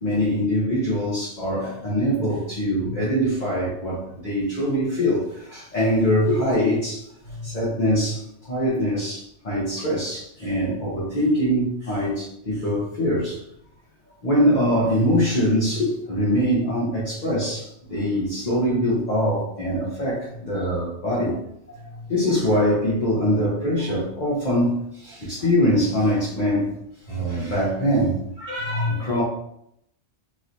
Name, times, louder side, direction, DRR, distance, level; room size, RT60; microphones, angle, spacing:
voice 1, 0.0-7.0 7.4-13.4 14.2-21.3 22.1-26.7 27.1-28.2 28.9-29.2, equal, 40° left, -8 dB, 1.0 m, -23 dB
voice 2, 28.4-29.1, left 3 dB, 10° left, -11 dB, 1.5 m, -31 dB
3.0 x 2.9 x 2.6 m, 0.74 s
omnidirectional pair, 1.2 m